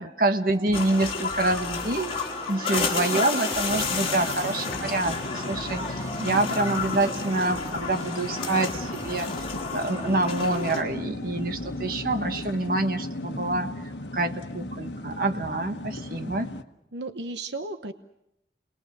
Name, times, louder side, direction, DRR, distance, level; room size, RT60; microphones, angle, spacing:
voice 1, 0.0-2.2 2.5-9.3 9.7-13.7 14.1-16.5, right 2 dB, 55° right, 6 dB, 1.4 m, -27 dB
sound 1, 0.5-9.7, right 1 dB, 20° right, 2.5 m, -44 dB
sound 2, 0.7-10.8, left 4 dB, 30° left, 3.1 m, -31 dB
sound 3, 3.7-16.6, left 1 dB, 85° left, 1.2 m, -36 dB
voice 2, 16.9-17.9, right 2 dB, 80° right, 8 dB, 1.0 m, -34 dB
29.5 x 21.0 x 6.8 m, 0.81 s
head